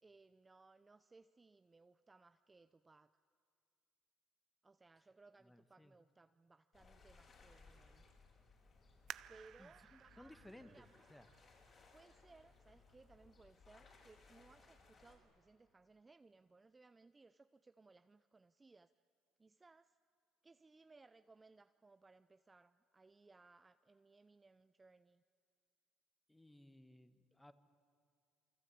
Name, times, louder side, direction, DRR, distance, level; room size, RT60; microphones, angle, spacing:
voice 1, 0.0-3.2 4.6-8.1 9.3-10.9 11.9-18.9 19.4-20.0 20.4-25.2, right 3 dB, 20° right, 11 dB, 0.7 m, -65 dB
voice 2, 5.4-5.9 9.6-11.3 26.3-27.5, left 1 dB, 5° left, 10 dB, 1.6 m, -60 dB
sound 1, 6.7-15.2, left 4 dB, 40° left, 7.5 m, -65 dB
sound 2, 9.1-12.4 13.0-13.1 13.8-14.2 14.5-14.6, right 11 dB, 60° right, 0.6 m, -56 dB
28.0 x 24.5 x 8.6 m, 2.4 s
cardioid pair, 105°, 0 cm